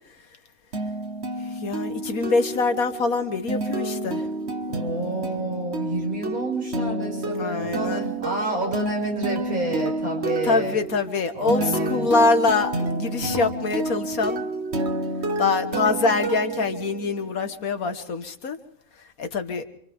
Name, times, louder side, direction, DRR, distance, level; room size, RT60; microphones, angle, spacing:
sound 1, 0.7-17.4, right 2 dB, 50° right, 1.7 m, -29 dB
voice 1, 1.4-4.3 7.3-8.0 10.4-14.4 15.4-18.6 19.2-19.6, left 4 dB, 85° left, 8 dB, 2.0 m, -24 dB
voice 2, 4.8-10.8 11.3-12.1, right 2 dB, 80° right, 0 dB, 7.0 m, -29 dB
28.0 x 27.0 x 3.6 m, 0.67 s
omnidirectional pair, 1.4 m